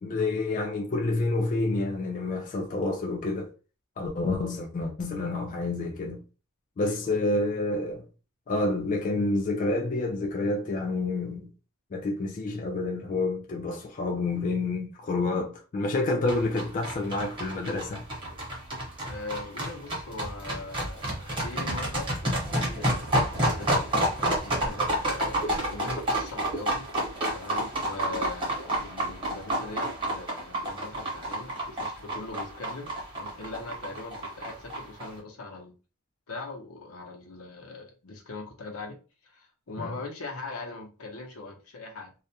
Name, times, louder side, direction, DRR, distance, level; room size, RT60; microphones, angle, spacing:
voice 1, 0.0-3.5 4.0-6.2 6.8-8.1 8.5-11.5 11.9-18.0 39.8-39.9, left 2 dB, 35° left, 0.3 m, -28 dB
voice 2, 6.8-7.2 19.1-23.9 24.4-26.9 27.3-32.9 33.1-35.7 36.3-39.0 39.2-42.1, left 3 dB, 80° left, 0.7 m, -40 dB
sound 1, 16.3-35.1, right 1 dB, 25° right, 0.9 m, -29 dB
2.3 x 2.1 x 2.7 m
head